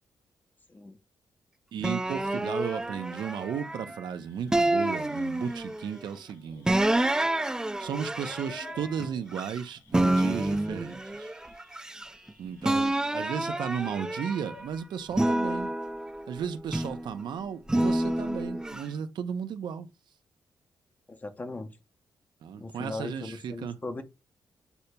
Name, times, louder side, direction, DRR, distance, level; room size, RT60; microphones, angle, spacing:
voice 1, 1.7-6.8 7.8-11.3 12.4-15.7 16.3-19.9 22.4-23.8, right 8 dB, 75° right, 0.5 m, -35 dB
sound 1, 1.8-4.0 4.5-5.9 6.7-9.6 9.9-12.3 12.6-14.6 15.1-17.1 17.7-18.8, right 1 dB, 10° right, 0.3 m, -28 dB
sound 2, 4.1-14.6, left 5 dB, 85° left, 1.7 m, -56 dB
voice 2, 21.1-21.7 22.6-24.0, left 2 dB, 20° left, 0.6 m, -38 dB
8.0 x 2.8 x 2.2 m
cardioid pair, 115°, 8 cm